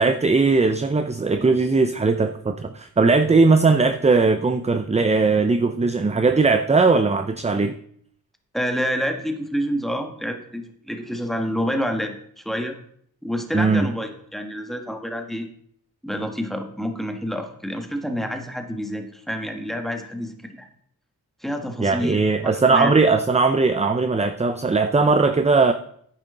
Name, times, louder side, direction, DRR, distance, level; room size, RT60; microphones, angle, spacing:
voice 1, 0.0-7.8 13.5-13.9 21.8-25.7, right 4 dB, 15° right, 0.6 m, -19 dB
voice 2, 8.5-12.8 13.2-15.5 16.0-20.7 21.4-22.9, equal, ahead, 1.6 m, -28 dB
10.0 x 9.1 x 3.8 m
cardioid pair, 75°, 38 cm